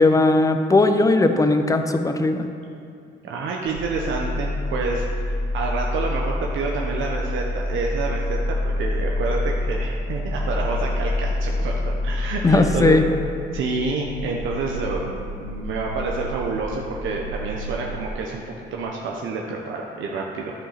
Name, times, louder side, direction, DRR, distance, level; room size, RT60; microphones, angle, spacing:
voice 1, 0.0-2.5 12.4-13.0, left 2 dB, 15° left, 7 dB, 0.7 m, -18 dB
voice 2, 3.2-13.0 13.5-20.5, right 3 dB, 80° right, -1 dB, 0.9 m, -28 dB
sound 1, 3.7-18.1, left 1 dB, 75° left, 1.7 m, -27 dB
11.0 x 5.3 x 5.8 m, 2.5 s
cardioid pair, 90°, 20 cm